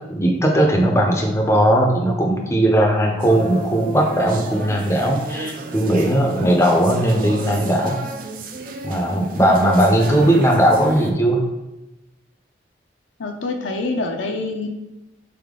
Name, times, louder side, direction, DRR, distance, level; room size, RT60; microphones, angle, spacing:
voice 1, 0.1-8.0 8.8-11.5, right 1 dB, 15° left, 1 dB, 0.6 m, -18 dB
sound 1, 3.2-11.1, right 2 dB, 45° right, 0.4 m, -32 dB
voice 2, 13.2-14.7, left 3 dB, 75° left, 4 dB, 0.6 m, -25 dB
4.1 x 3.5 x 3.7 m, 0.98 s
head